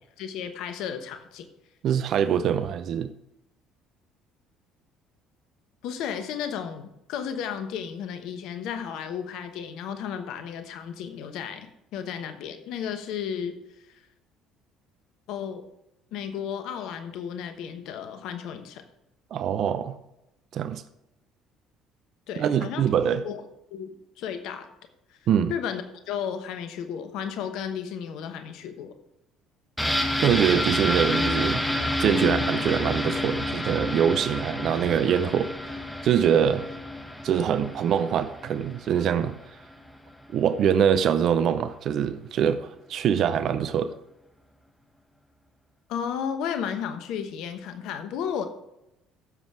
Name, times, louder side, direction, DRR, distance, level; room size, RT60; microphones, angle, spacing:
voice 1, 0.2-1.5 5.8-13.5 13.9-14.0 15.3-15.7 16.1-18.9 22.3-22.9 23.2-23.4 23.7-24.7 25.1-25.2 25.5-28.9 45.9-48.5, left 8 dB, 65° left, 9 dB, 1.0 m, -33 dB
voice 2, 1.8-3.1 19.3-19.9 20.5-20.8 22.4-23.2 25.3-25.5 30.2-31.6 32.0-36.6 37.2-39.3 40.3-43.9, right 8 dB, 55° right, 12 dB, 0.6 m, -24 dB
sound 1, 29.8-39.4 39.7-39.8, left 1 dB, 5° left, 1.9 m, -29 dB
14.0 x 7.3 x 3.5 m, 0.86 s
hypercardioid pair, 55°, 0 cm